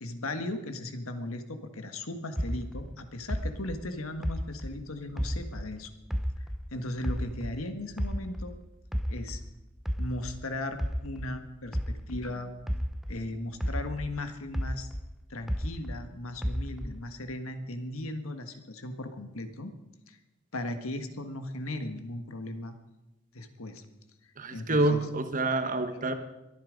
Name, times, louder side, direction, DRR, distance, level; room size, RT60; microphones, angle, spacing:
voice 1, 0.0-5.9 6.7-8.5 9.1-9.4 10.0-12.5 13.1-14.9 15.3-19.7 20.1-20.2 20.5-22.7 23.3-23.8 24.5-25.0, left 1 dB, 80° left, 8 dB, 1.6 m, -37 dB
sound 1, 2.4-5.8 6.1-8.6 8.9-13.3 13.6-16.1 16.4-17.1, equal, ahead, 0.8 m, -33 dB
voice 2, 24.4-26.1, right 2 dB, 40° right, 8 dB, 1.2 m, -27 dB
22.5 x 9.8 x 5.2 m, 0.98 s
head